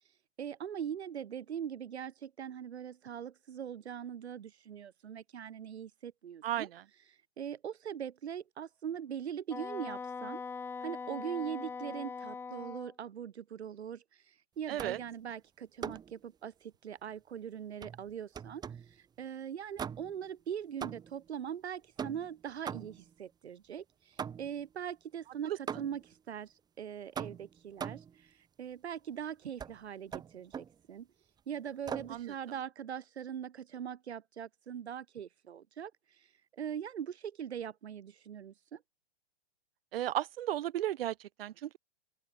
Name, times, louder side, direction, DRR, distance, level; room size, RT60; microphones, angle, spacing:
voice 1, 0.4-6.7 7.4-10.4 10.8-18.6 19.2-31.1 31.5-35.9 36.5-38.8, right 8 dB, 80° right, 3.1 m, -41 dB
voice 2, 6.4-6.8 14.7-15.0 25.5-25.6 32.1-32.3 39.9-41.8, right 12 dB, 60° right, 1.8 m, -34 dB
Wind instrument woodwind instrument, 9.5-12.9, left 5 dB, 5° left, 0.8 m, -41 dB
sound 1, 14.8-15.1 15.8-16.2 17.8-18.9 19.8-20.3 20.8-21.3 22.0-23.1 24.2-24.7 25.7-26.1 27.2-28.2 29.6-29.8 30.1-30.8 31.9-32.2, right 7 dB, 10° right, 1.6 m, -41 dB
open air
hypercardioid pair, 145°, 32 cm